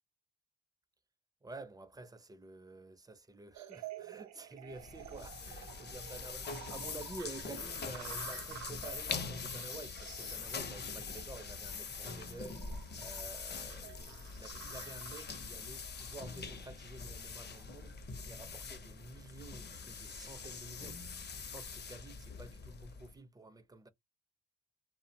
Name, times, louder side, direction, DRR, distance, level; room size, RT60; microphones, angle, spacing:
voice 1, 1.4-21.0 21.5-23.9, right 2 dB, 15° right, 0.4 m, -50 dB
sound 1, 3.5-17.8, right 12 dB, 65° right, 0.5 m, -52 dB
sound 2, 4.7-23.2, left 5 dB, 35° left, 0.6 m, -43 dB
2.7 x 2.1 x 2.6 m
cardioid pair, 90°, 30 cm